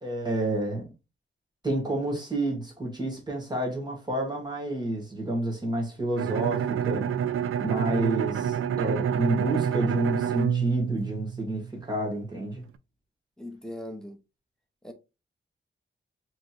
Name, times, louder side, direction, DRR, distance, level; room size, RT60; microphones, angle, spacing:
voice 1, 0.0-0.9 1.6-7.1 7.6-12.7, right 1 dB, 20° right, 1.7 m, -30 dB
Bowed string instrument, 6.2-11.8, right 8 dB, 80° right, 0.4 m, -28 dB
voice 2, 13.4-14.2 14.8-14.9, left 1 dB, 5° left, 0.8 m, -39 dB
5.0 x 3.1 x 2.5 m
wide cardioid pair, 155°, 21 cm